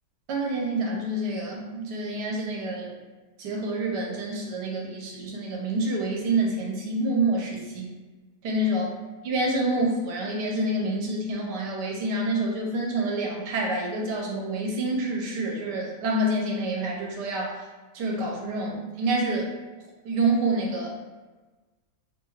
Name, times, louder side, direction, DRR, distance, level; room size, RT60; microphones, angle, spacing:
voice 1, 0.3-2.9 3.4-7.9 8.4-8.9 9.2-17.6 17.9-19.5 20.0-20.9, right 2 dB, 85° right, -1 dB, 1.3 m, -27 dB
3.2 x 2.3 x 3.0 m, 1.3 s
omnidirectional pair, 1.8 m